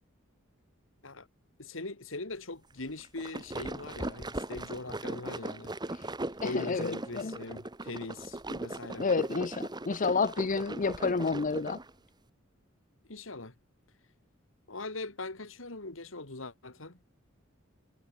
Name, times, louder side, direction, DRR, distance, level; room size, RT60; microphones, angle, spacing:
voice 1, 1.6-5.7 6.4-9.1 13.1-13.5 14.7-17.0, left 2 dB, 80° left, 2.7 m, -41 dB
sound 1, 3.0-11.9, right 2 dB, 20° right, 1.7 m, -39 dB
voice 2, 6.4-7.4 8.5-8.6 9.0-11.8, left 4 dB, 40° left, 0.6 m, -30 dB
head